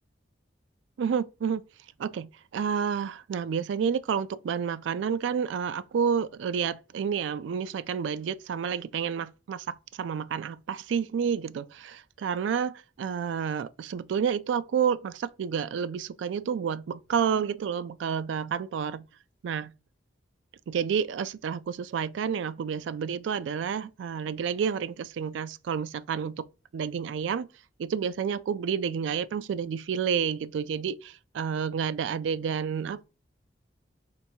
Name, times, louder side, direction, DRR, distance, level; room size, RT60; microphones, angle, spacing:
voice 1, 1.0-1.6 2.0-19.0 19.4-19.7 20.7-26.4 26.7-27.5 27.8-33.0, right 7 dB, 75° right, 0.3 m, -30 dB
4.5 x 3.4 x 2.7 m
head